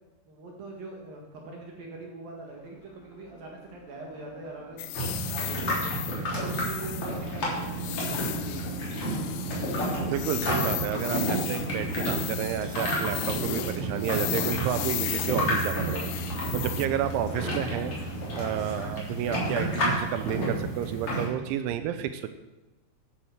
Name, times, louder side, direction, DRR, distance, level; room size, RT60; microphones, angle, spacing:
voice 1, 0.3-8.6, right 2 dB, 60° right, 0 dB, 2.9 m, -43 dB
sound 1, 2.5-18.9, left 4 dB, 65° left, 2.9 m, -42 dB
sound 2, 4.8-16.9, left 16 dB, 85° left, 3.0 m, -36 dB
sound 3, 4.9-21.3, right 1 dB, 30° left, 3.8 m, -31 dB
voice 2, 10.1-16.1 16.5-22.3, right 10 dB, 80° right, 10 dB, 2.9 m, -31 dB
11.5 x 10.0 x 6.6 m, 1.1 s
omnidirectional pair, 5.7 m